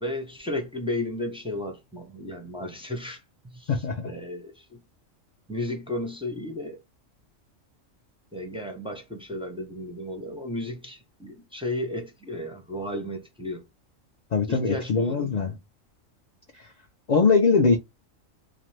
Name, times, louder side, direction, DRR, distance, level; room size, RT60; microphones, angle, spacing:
voice 1, 0.0-3.2 3.5-3.7 4.0-4.8 5.5-6.8 8.3-13.6 14.5-15.5, left 1 dB, 10° right, 0.4 m, -34 dB
voice 2, 3.7-4.1 14.3-15.6 16.6-16.7 17.1-17.8, left 4 dB, 65° left, 0.4 m, -22 dB
2.5 x 2.5 x 3.1 m
omnidirectional pair, 1.4 m